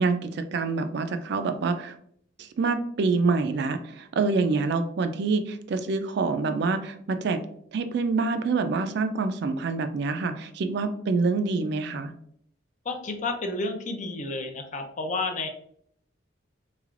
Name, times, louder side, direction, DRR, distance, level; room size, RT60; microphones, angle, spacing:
voice 1, 0.0-2.0 2.4-7.4 7.7-12.1, right 4 dB, 60° right, 9 dB, 0.3 m, -26 dB
voice 2, 12.8-15.5, left 3 dB, 40° left, 5 dB, 0.5 m, -31 dB
3.4 x 3.2 x 2.4 m, 0.66 s
head